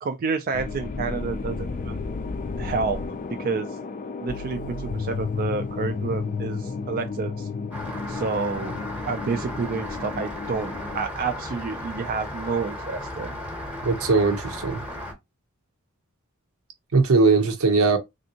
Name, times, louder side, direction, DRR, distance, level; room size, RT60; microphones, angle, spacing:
voice 1, 0.0-2.0 2.6-3.0 3.3-3.7 4.2-7.5 8.1-8.8 9.1-13.3, right 4 dB, 45° right, 0.3 m, -29 dB
sound 1, 0.5-11.0, left 4 dB, 40° left, 0.3 m, -32 dB
Rain, 7.7-15.1, left 1 dB, 5° right, 0.8 m, -35 dB
voice 2, 13.8-14.8 16.9-18.0, right 4 dB, 80° right, 0.8 m, -20 dB
3.4 x 2.6 x 2.7 m
head